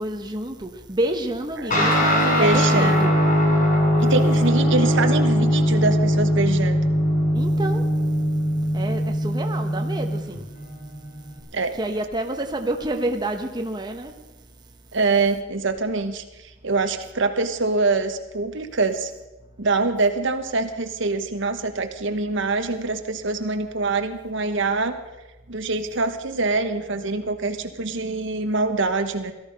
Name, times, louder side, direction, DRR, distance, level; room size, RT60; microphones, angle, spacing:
voice 1, 0.0-3.1 7.3-7.9 8.7-10.5 11.7-14.1, right 1 dB, 20° right, 4 dB, 1.0 m, -28 dB
Guitar, 1.7-11.4, equal, 40° left, 4.3 m, -21 dB
voice 2, 2.4-3.1 4.0-6.9 11.5-11.7 14.9-16.2 16.6-19.1 19.6-25.0 25.5-29.3, right 3 dB, 65° right, 7 dB, 1.1 m, -24 dB
17.5 x 13.0 x 5.3 m, 1.0 s
head